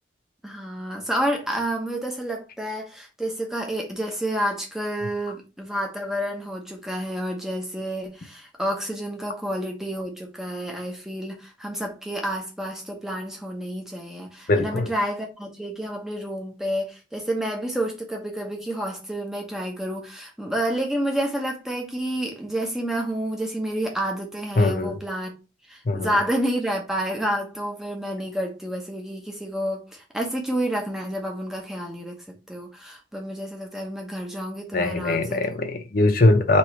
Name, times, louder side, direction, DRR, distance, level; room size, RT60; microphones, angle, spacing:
voice 1, 0.4-25.3 25.7-35.5, right 1 dB, 5° right, 0.9 m, -29 dB
voice 2, 14.5-14.9 24.6-25.0 25.8-26.2 34.7-36.6, left 2 dB, 50° left, 0.6 m, -21 dB
3.0 x 3.0 x 4.4 m
head